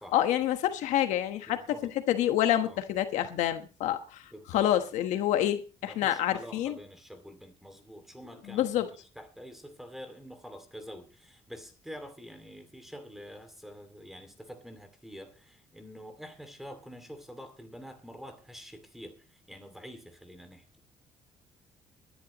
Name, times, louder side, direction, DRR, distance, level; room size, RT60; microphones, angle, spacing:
voice 1, 0.1-1.6 2.1-6.8 8.5-8.9, left 12 dB, 90° left, 1.3 m, -27 dB
voice 2, 1.5-1.9 2.6-2.8 4.3-4.7 5.8-8.9 9.2-20.6, equal, ahead, 2.4 m, -47 dB
22.0 x 11.0 x 3.0 m
cardioid pair, 120°, 12 cm